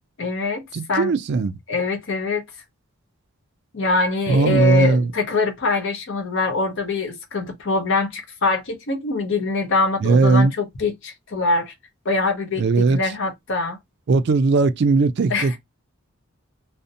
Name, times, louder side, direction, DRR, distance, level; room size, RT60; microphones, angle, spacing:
voice 1, 0.2-1.1 1.7-2.4 3.7-11.7 12.0-13.8 15.3-15.6, left 3 dB, 55° left, 0.6 m, -23 dB
voice 2, 0.7-1.6 4.3-5.1 10.0-10.5 12.6-13.1 14.1-15.6, right 3 dB, 50° right, 0.3 m, -18 dB
2.5 x 2.0 x 2.6 m
head